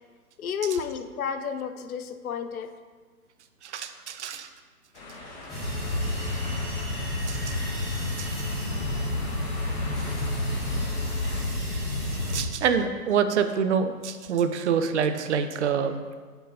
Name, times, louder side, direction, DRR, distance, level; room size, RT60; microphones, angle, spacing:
voice 1, 0.4-2.7, left 7 dB, 65° left, 9 dB, 0.6 m, -31 dB
voice 2, 3.6-4.5 7.3-7.5 8.2-8.3 12.2-15.9, right 7 dB, 50° right, 9 dB, 0.5 m, -26 dB
sound 1, 4.9-11.4, left 2 dB, 40° left, 1.1 m, -42 dB
sound 2, 5.5-12.4, left 1 dB, ahead, 1.7 m, -29 dB
6.6 x 3.9 x 4.0 m, 1.5 s
figure-of-eight pair, 130°, 47 cm